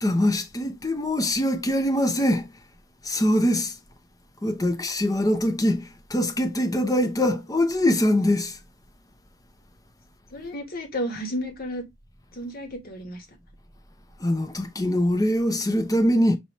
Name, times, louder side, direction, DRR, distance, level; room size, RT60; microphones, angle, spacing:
voice 1, 0.0-2.4 3.1-3.7 4.4-5.8 6.1-8.5 14.2-16.4, left 1 dB, 20° left, 0.6 m, -23 dB
voice 2, 10.3-11.8 12.3-13.2, equal, 50° left, 1.4 m, -32 dB
5.7 x 2.9 x 3.0 m
head